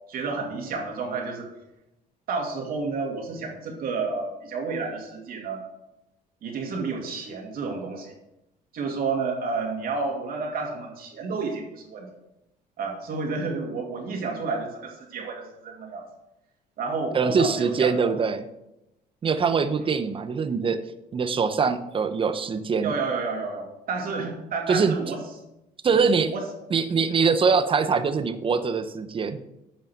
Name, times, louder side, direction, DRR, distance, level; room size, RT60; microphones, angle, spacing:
voice 1, 0.1-1.5 2.3-5.6 6.4-8.1 8.7-12.1 12.8-16.0 16.8-18.1 22.8-25.2 25.9-26.0 26.3-26.4, right 4 dB, 60° right, 1 dB, 2.5 m, -30 dB
voice 2, 17.1-18.4 19.2-20.8 21.1-22.9 24.7-24.9 25.8-26.3 26.7-29.4, right 5 dB, 30° right, 10 dB, 0.8 m, -23 dB
8.9 x 5.6 x 6.1 m, 0.89 s
cardioid pair, 110°, 17 cm